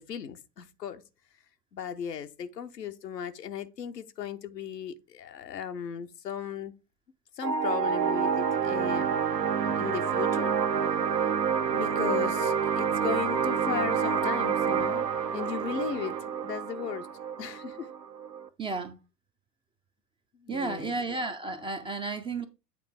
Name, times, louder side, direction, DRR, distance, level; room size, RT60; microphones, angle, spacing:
voice 1, 0.1-1.0 1.7-6.7 7.4-9.1 9.5-10.5 11.7-17.1 17.4-17.9 20.3-21.0, left 8 dB, 85° left, 0.8 m, -36 dB
sound 1, 7.4-18.5, right 7 dB, 80° right, 0.9 m, -28 dB
voice 2, 18.6-19.0 20.5-22.5, right 3 dB, 10° right, 0.4 m, -32 dB
8.5 x 3.3 x 4.6 m
figure-of-eight pair, 85°, 48 cm